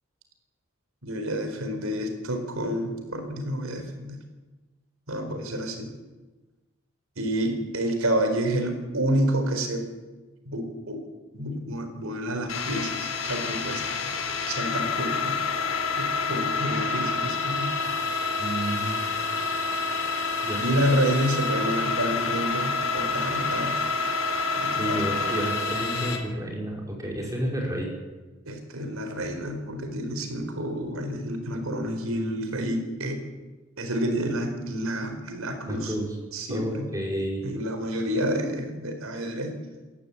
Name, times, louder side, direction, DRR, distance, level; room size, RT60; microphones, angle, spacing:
voice 1, 1.0-4.2 5.1-5.9 7.2-9.9 10.5-11.0 11.3-13.8 14.5-15.4 16.0-17.7 20.6-23.9 24.6-25.2 28.5-33.2 33.8-36.0 36.3-36.9 37.4-39.6, equal, 85° right, 6 dB, 4.5 m, -29 dB
sound 1, 12.5-26.2, left 4 dB, 80° left, 3.8 m, -28 dB
voice 2, 18.4-19.1 20.4-20.6 24.8-27.9 35.7-36.1 36.5-37.4, right 1 dB, 15° right, -1 dB, 5.4 m, -30 dB
28.5 x 13.5 x 8.7 m, 1.2 s
head